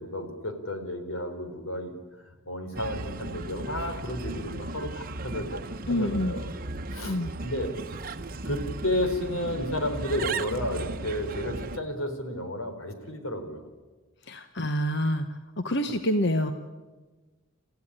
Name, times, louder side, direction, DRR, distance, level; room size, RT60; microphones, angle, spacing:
voice 1, 0.0-2.0 2.5-6.5 6.9-7.7 8.4-13.7, left 1 dB, 90° left, 6 dB, 4.0 m, -32 dB
Bird, 2.7-11.8, right 2 dB, 45° right, 1.0 m, -36 dB
voice 2, 5.9-6.3 7.0-7.3 14.3-15.3 15.6-16.5, left 1 dB, 55° left, 7 dB, 1.1 m, -27 dB
29.0 x 15.0 x 9.9 m, 1.3 s
head